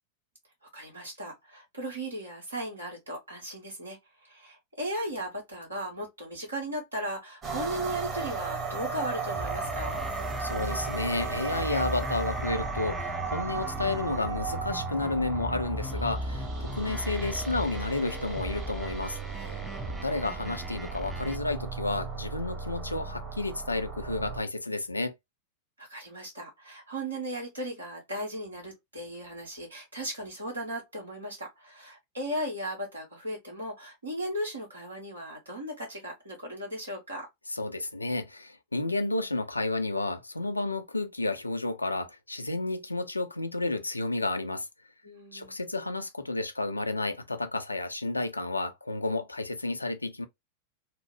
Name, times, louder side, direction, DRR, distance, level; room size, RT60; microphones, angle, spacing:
voice 1, 0.7-10.0 19.4-20.1 25.8-37.3 45.0-45.5, right 1 dB, 80° right, 1.4 m, -37 dB
sound 1, 7.4-24.4, right 5 dB, 25° right, 1.1 m, -36 dB
sound 2, 9.4-21.4, equal, 5° right, 0.5 m, -37 dB
voice 2, 10.4-19.2 20.0-25.1 37.5-44.7 45.3-50.2, left 2 dB, 80° left, 0.4 m, -31 dB
2.8 x 2.1 x 3.0 m
figure-of-eight pair, 90°, 0 cm